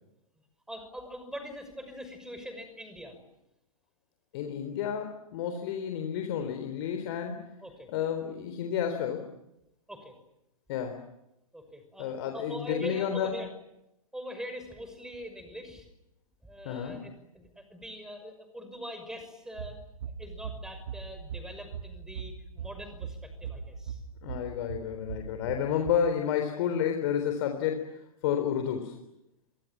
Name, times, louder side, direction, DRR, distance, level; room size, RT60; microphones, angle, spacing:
voice 1, 0.7-3.3 7.6-7.9 9.9-10.2 11.5-13.5 14.1-15.9 16.4-19.8 20.2-24.0, equal, 5° right, 9 dB, 6.0 m, -43 dB
voice 2, 4.3-7.5 7.9-9.3 10.7-11.0 12.0-13.3 16.6-17.0 24.2-29.0, left 8 dB, 45° left, 5 dB, 3.9 m, -31 dB
sound 1, 19.5-25.9, right 6 dB, 55° right, 2.2 m, -41 dB
29.0 x 25.5 x 7.5 m, 0.88 s
figure-of-eight pair, 105°, 19 cm